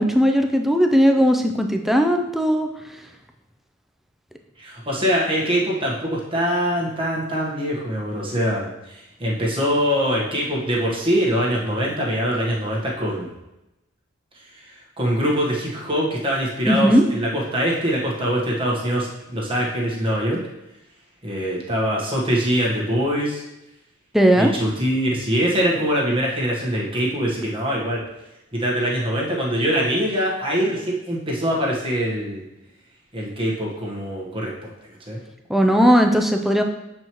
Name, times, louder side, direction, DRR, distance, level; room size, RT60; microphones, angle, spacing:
voice 1, 0.0-2.7 16.6-17.0 24.1-24.5 35.5-36.6, equal, ahead, 4 dB, 0.4 m, -17 dB
voice 2, 4.6-13.3 14.3-20.4 21.2-23.4 24.3-28.0 28.5-32.4 33.1-34.7 35.1-35.2, equal, 25° right, -4 dB, 1.3 m, -23 dB
7.6 x 4.5 x 3.1 m, 0.92 s
head